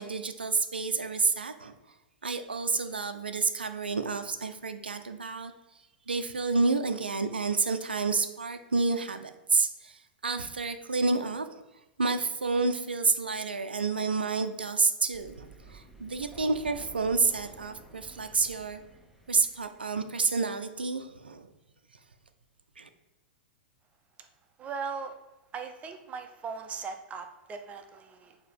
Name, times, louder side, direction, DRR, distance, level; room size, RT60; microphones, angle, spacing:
voice 1, 0.0-1.7 2.2-5.5 6.1-11.5 12.0-18.8 19.3-21.5 22.8-22.9, right 4 dB, 90° right, 8 dB, 0.4 m, -29 dB
Thunder, 15.1-20.0, right 2 dB, ahead, 1.0 m, -51 dB
voice 2, 24.6-25.1 25.5-28.4, right 5 dB, 25° right, 6 dB, 0.7 m, -39 dB
6.6 x 2.9 x 5.1 m, 1.1 s
hypercardioid pair, 105°, 5 cm